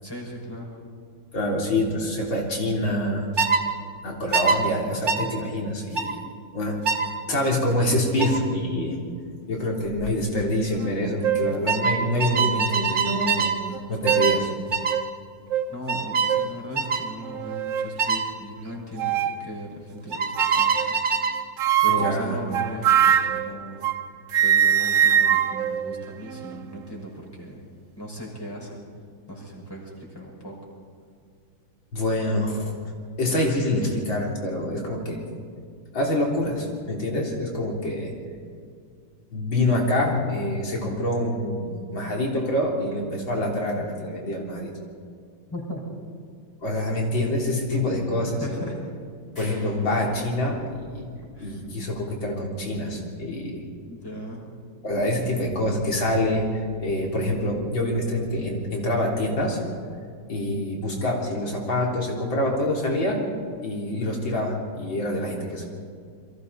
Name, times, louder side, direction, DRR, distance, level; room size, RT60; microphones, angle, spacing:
voice 1, 0.0-0.8 15.7-19.1 19.4-20.9 21.8-23.9 24.4-27.6 28.0-28.8 29.3-30.5 45.5-45.8 48.4-48.8 51.4-51.6 53.9-54.4, equal, 10° left, -3 dB, 5.7 m, -37 dB
voice 2, 1.3-3.3 4.0-6.2 6.5-6.8 7.3-9.0 9.5-13.5 13.9-14.5 21.9-22.4 31.9-32.7 33.2-35.2 35.9-38.1 39.3-44.7 46.6-48.6 49.4-51.1 51.4-53.6 54.8-59.6 60.3-63.2 63.6-65.6, left 1 dB, 80° left, -2 dB, 4.3 m, -26 dB
sound 1, 3.4-3.6 4.3-4.6 5.1-5.3 6.0-6.1 6.9-7.1 8.2-8.4 9.9-10.1 10.4-10.8 11.7-13.6 14.1-14.4 14.7-15.0 15.9-16.4 16.8-17.1 18.0-18.3 20.1-21.4, right 5 dB, 40° right, 1.6 m, -24 dB
sound 2, 10.8-10.9 11.2-11.6 12.4-12.5 13.7-14.5 14.9-15.1 15.5-15.7 16.3-16.6 17.2-18.0 19.0-19.4 20.4-21.0 21.6-24.1 24.3-26.6, right 9 dB, 70° right, 0.8 m, -23 dB
sound 3, 42.4-43.7 48.2-48.3 48.6-48.7 49.3-50.3, left 1 dB, 50° left, 7.1 m, -49 dB
29.0 x 23.5 x 4.2 m, 2.3 s
omnidirectional pair, 2.1 m